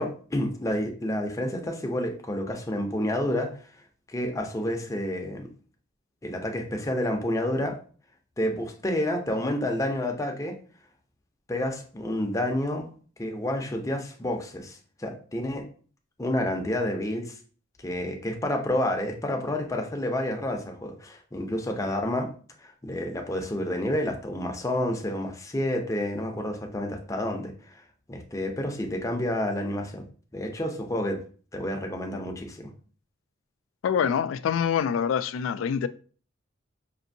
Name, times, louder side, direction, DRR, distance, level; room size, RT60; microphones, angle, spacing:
voice 1, 0.0-3.6 4.1-5.5 6.2-7.8 8.4-10.6 11.5-12.9 13.2-15.6 16.2-17.3 17.8-22.3 22.6-27.8 28.1-30.0 30.3-31.2 31.5-32.7, left 1 dB, 15° left, 0.6 m, -29 dB
voice 2, 33.8-35.9, left 7 dB, 75° left, 0.3 m, -25 dB
5.1 x 2.7 x 2.6 m
head